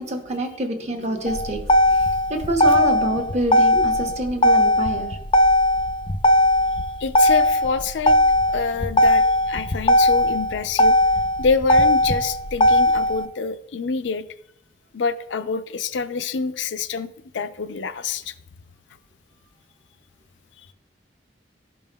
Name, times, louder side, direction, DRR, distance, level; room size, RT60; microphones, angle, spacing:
voice 1, 0.0-1.6 1.9-5.2, right 1 dB, 40° right, 3 dB, 0.9 m, -26 dB
Motor vehicle (road), 1.3-13.2, left 1 dB, 30° left, 0.5 m, -18 dB
voice 2, 7.0-8.2 8.5-11.0 11.4-14.2 14.9-17.1 17.3-18.3, left 5 dB, 90° left, 11 dB, 0.5 m, -26 dB
12.5 x 5.4 x 2.2 m, 0.77 s
head